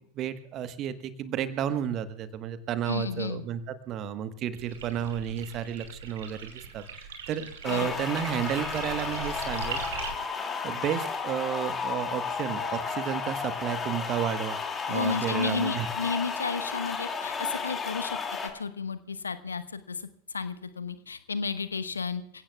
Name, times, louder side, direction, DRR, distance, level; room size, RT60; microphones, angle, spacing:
voice 1, 0.1-9.8 10.6-14.6 14.9-15.9, right 9 dB, 35° right, 11 dB, 1.3 m, -32 dB
voice 2, 2.9-3.4 7.7-7.9 14.9-18.2 18.4-20.0 20.3-22.2, left 5 dB, 75° left, 12 dB, 1.0 m, -32 dB
sound 1, 4.5-10.1, right 5 dB, 60° right, 2.8 m, -40 dB
sound 2, 7.6-18.5, left 5 dB, 20° left, 2.4 m, -33 dB
28.0 x 16.5 x 2.3 m, 0.69 s
figure-of-eight pair, 90°, 0 cm